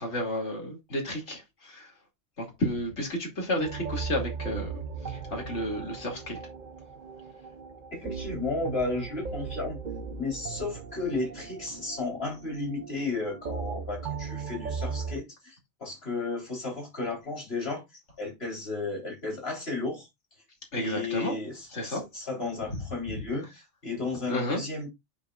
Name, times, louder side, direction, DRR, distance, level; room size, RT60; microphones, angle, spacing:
voice 1, 0.0-1.9 2.4-6.4 20.7-21.4 21.7-22.0 22.7-22.8 24.3-24.6, left 1 dB, 80° left, 2.8 m, -32 dB
sound 1, 3.6-15.2, right 5 dB, 45° right, 0.8 m, -38 dB
voice 2, 7.9-9.8 10.2-15.5 15.8-17.8 18.2-20.1 20.8-24.9, left 3 dB, 60° left, 4.0 m, -33 dB
9.4 x 6.6 x 2.4 m
omnidirectional pair, 1.2 m